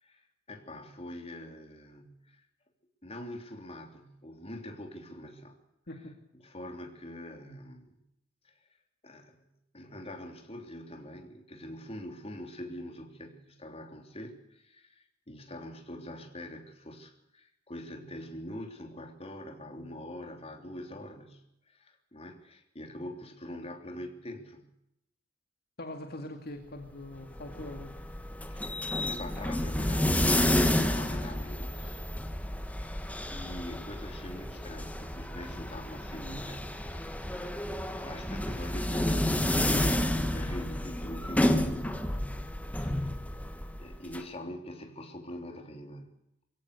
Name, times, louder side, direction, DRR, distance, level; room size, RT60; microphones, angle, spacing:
voice 1, 0.0-2.4 3.0-5.6 6.3-8.0 8.4-8.6 9.0-9.4 9.7-24.7 28.5-32.0 33.3-36.7 38.0-42.1 42.6-43.0 43.8-46.2, left 1 dB, 30° left, 4 dB, 3.4 m, -44 dB
voice 2, 25.8-28.0, left 1 dB, 55° left, 4 dB, 2.2 m, -42 dB
sound 1, 27.1-44.2, left 1 dB, 10° left, 1.5 m, -30 dB
22.5 x 17.0 x 6.8 m, 0.81 s
head